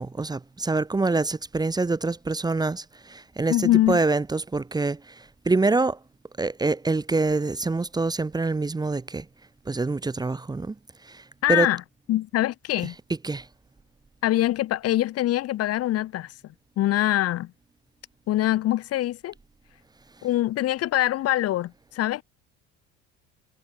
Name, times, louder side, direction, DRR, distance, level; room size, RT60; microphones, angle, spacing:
voice 1, 0.0-6.0 6.4-9.2 9.7-10.7 11.0-11.7 12.8-13.5, right 3 dB, 15° right, 1.3 m, -26 dB
voice 2, 3.5-4.0 11.4-11.8 12.1-12.9 14.2-16.3 16.8-17.5 18.3-19.3 20.2-22.2, left 14 dB, 55° left, 1.5 m, -23 dB
cardioid pair, 115°, 30 cm